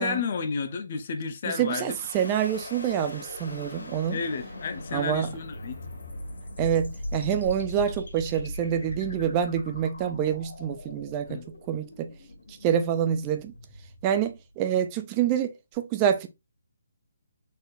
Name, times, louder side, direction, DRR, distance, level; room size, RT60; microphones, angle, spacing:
voice 1, 0.0-2.0 4.1-5.8 11.2-11.5, left 5 dB, 35° left, 0.6 m, -31 dB
voice 2, 1.4-4.2 4.9-5.3 6.6-12.1 12.5-13.5 14.0-16.3, right 9 dB, 15° right, 0.4 m, -27 dB
sound 1, 1.9-14.8, left 1 dB, 80° left, 1.8 m, -40 dB
4.0 x 3.8 x 2.5 m
hypercardioid pair, 175°, 0 cm